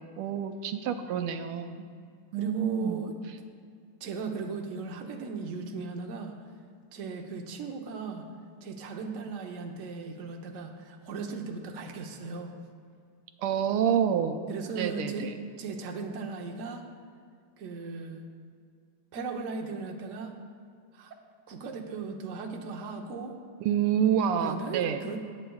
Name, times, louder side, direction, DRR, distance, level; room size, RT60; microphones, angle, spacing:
voice 1, 0.0-1.9 2.3-3.0 13.4-14.5 14.7-15.4 23.6-25.0, right 8 dB, 90° right, 7 dB, 1.6 m, -28 dB
voice 2, 2.4-3.2 4.0-6.3 6.9-8.3 8.6-12.5 14.5-15.3 15.6-16.8 17.6-18.2 19.1-20.3 20.9-21.2 21.5-23.4 24.4-25.2, right 4 dB, 55° right, 2 dB, 0.9 m, -37 dB
19.0 x 8.8 x 2.3 m, 2.3 s
omnidirectional pair, 2.4 m